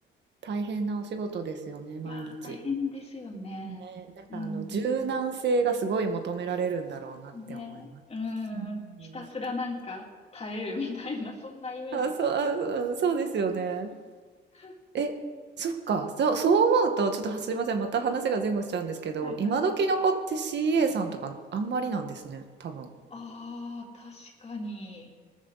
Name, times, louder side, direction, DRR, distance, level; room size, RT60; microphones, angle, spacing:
voice 1, 0.4-2.6 3.6-4.1 4.3-7.8 8.5-8.7 9.0-9.1 11.9-13.9 14.9-15.1 15.6-22.9, right 5 dB, 60° right, 5 dB, 1.8 m, -28 dB
voice 2, 2.0-3.8 4.3-4.8 7.3-10.1 10.3-12.1 14.5-14.7 19.2-19.6 20.8-20.9 23.1-25.1, left 3 dB, 30° left, 0 dB, 3.4 m, -36 dB
20.0 x 13.5 x 4.2 m, 1.5 s
cardioid pair, 90°, 20 cm